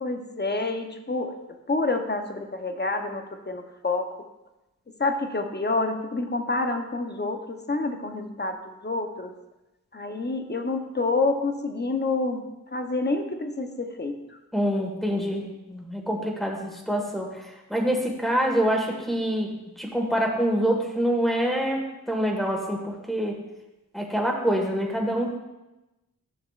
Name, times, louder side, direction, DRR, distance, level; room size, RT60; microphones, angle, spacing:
voice 1, 0.0-1.4 1.7-4.1 5.0-9.3 9.9-12.4 12.7-14.2, left 3 dB, 30° left, 6 dB, 0.8 m, -28 dB
voice 2, 14.5-19.5 19.8-23.4 23.9-25.4, equal, ahead, 0 dB, 1.6 m, -26 dB
12.5 x 6.7 x 2.5 m, 1.0 s
wide cardioid pair, 65°, 34 cm